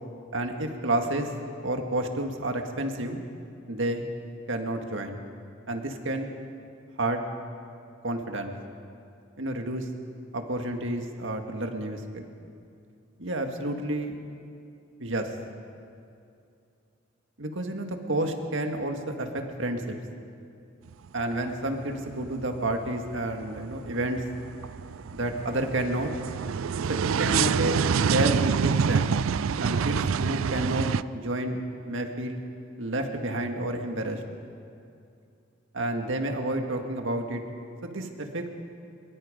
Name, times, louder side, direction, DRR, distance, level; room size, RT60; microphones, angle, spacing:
voice 1, 0.3-1.3 1.6-3.2 3.7-4.1 4.5-5.2 5.7-6.3 7.0-7.2 8.0-8.5 9.4-9.9 10.3-12.3 13.2-14.1 15.0-15.3 17.4-20.0 21.1-24.2 25.1-26.1 27.2-29.1 29.6-30.9 31.1-32.4 32.8-34.2 35.7-37.4 37.8-38.4, right 1 dB, 65° right, 4 dB, 2.0 m, -30 dB
sound 1, 20.9-21.5 21.8-31.0, right 6 dB, 80° right, 0.4 m, -27 dB
23.5 x 23.0 x 5.2 m, 2.5 s
head